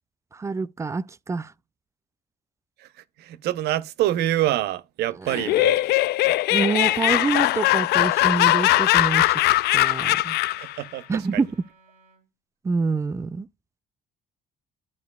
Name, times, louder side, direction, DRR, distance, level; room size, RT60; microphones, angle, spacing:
voice 1, 0.3-1.5 5.2-5.5 6.3-9.4 9.7-10.4 11.1-11.5 12.6-13.5, right 4 dB, 15° right, 0.3 m, -27 dB
voice 2, 3.2-5.8 7.2-7.3 8.6-8.7 10.5-11.4, right 13 dB, 75° right, 0.7 m, -26 dB
Laughter, 5.3-10.7, left 17 dB, 70° left, 0.4 m, -20 dB
Wind instrument woodwind instrument, 7.0-12.2, right 3 dB, 60° right, 4.5 m, -57 dB
12.0 x 4.6 x 2.3 m
cardioid pair, 110°, 17 cm